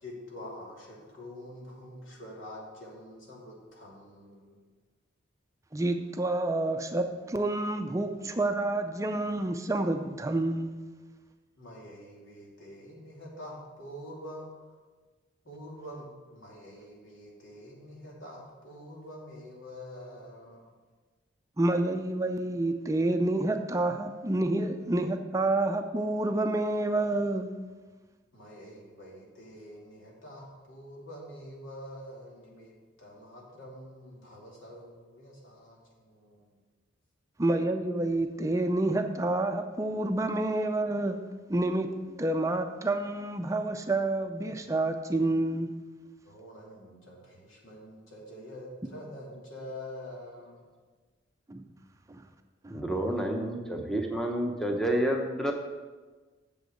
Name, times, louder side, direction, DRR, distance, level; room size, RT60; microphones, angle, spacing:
voice 1, 0.0-4.6 11.6-14.5 15.4-20.7 28.3-32.7 33.0-36.5 46.2-50.6, left 1 dB, 80° left, -3 dB, 2.8 m, -46 dB
voice 2, 5.7-10.7 21.6-27.5 37.4-41.2 41.5-45.7 51.5-51.7 52.1-52.2 52.6-52.8, right 2 dB, 15° right, 6 dB, 0.4 m, -28 dB
voice 3, 52.7-55.5, right 1 dB, 5° left, 1 dB, 0.8 m, -29 dB
8.1 x 7.1 x 6.4 m, 1.3 s
head